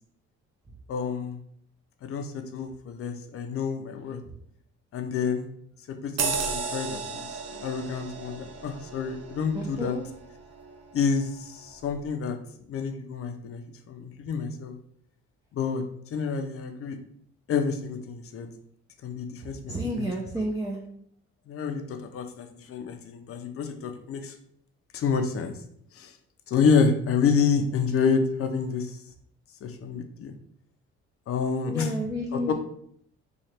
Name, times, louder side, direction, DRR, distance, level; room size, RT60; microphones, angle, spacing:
voice 1, 0.9-1.4 2.0-4.2 4.9-5.5 5.9-10.0 10.9-12.4 12.7-13.6 13.9-14.8 15.5-15.8 16.1-17.0 17.5-18.5 19.0-20.1 21.5-24.4 24.9-25.5 25.9-26.1 26.5-29.0 29.6-30.3 31.3-31.9 32.3-32.5, left 5 dB, 50° left, 6 dB, 0.6 m, -28 dB
sound 1, 6.2-11.1 11.6-11.8, right 5 dB, 60° right, 0.7 m, -34 dB
voice 2, 9.5-10.0 19.7-20.8 31.7-32.5, equal, 10° right, -1 dB, 0.5 m, -31 dB
3.1 x 2.4 x 4.3 m, 0.67 s
cardioid pair, 105°, 30 cm